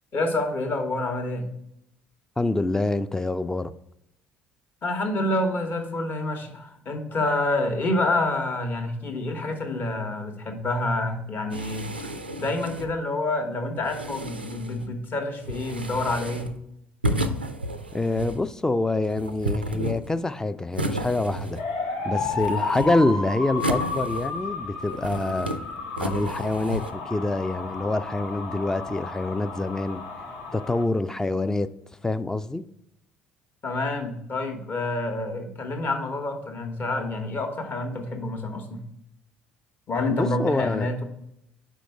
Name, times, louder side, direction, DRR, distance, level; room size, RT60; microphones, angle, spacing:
voice 1, 0.1-1.5 4.8-11.9 12.4-16.5 33.6-38.8 39.9-41.0, left 2 dB, 40° left, 1.0 m, -28 dB
voice 2, 2.4-3.7 17.9-21.6 22.0-25.5 26.0-30.0 30.5-31.7 32.0-32.6 40.1-40.9, left 2 dB, 10° left, 0.3 m, -26 dB
sound 1, 11.5-13.0 13.7-14.9 15.4-16.6 17.0-18.5 19.0-20.3 20.7-21.8 22.1-23.1 23.6-24.5 24.9-25.6 26.0-26.9, right 1 dB, 90° right, 0.3 m, -32 dB
sound 2, 21.6-30.8, left 4 dB, 60° left, 0.9 m, -33 dB
5.1 x 4.7 x 4.5 m
figure-of-eight pair, 55°, 5 cm